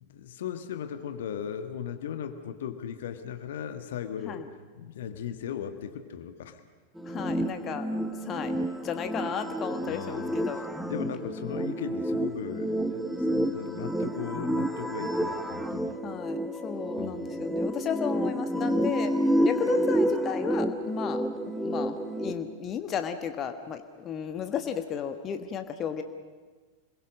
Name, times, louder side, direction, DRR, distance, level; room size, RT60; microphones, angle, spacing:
voice 1, 0.0-4.4 4.7-6.6 9.9-10.5 10.8-16.0 17.0-17.3, left 8 dB, 60° left, 8 dB, 1.5 m, -37 dB
voice 2, 7.0-7.9 8.2-10.6 16.0-19.1 19.4-21.2 21.6-26.0, left 8 dB, 30° left, 8 dB, 1.4 m, -34 dB
Thursday with blues, 7.0-22.3, equal, ahead, 1.2 m, -29 dB
26.5 x 21.5 x 6.4 m, 1.4 s
figure-of-eight pair, 90°, 0 cm